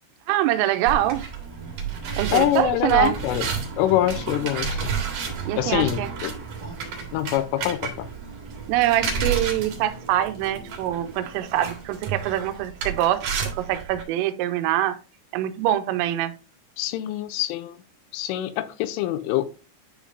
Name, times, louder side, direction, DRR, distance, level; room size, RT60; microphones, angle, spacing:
voice 1, 0.3-1.2 2.2-3.2 5.5-6.1 8.7-15.0 15.3-16.3, right 13 dB, 85° right, 3.1 m, -24 dB
sound 1, 0.9-14.0, right 6 dB, 55° right, 2.7 m, -31 dB
voice 2, 2.3-3.5 3.8-4.8 5.6-6.3 7.1-8.1 16.8-17.7 18.1-19.5, left 13 dB, 85° left, 3.1 m, -24 dB
11.0 x 5.1 x 2.6 m
omnidirectional pair, 5.9 m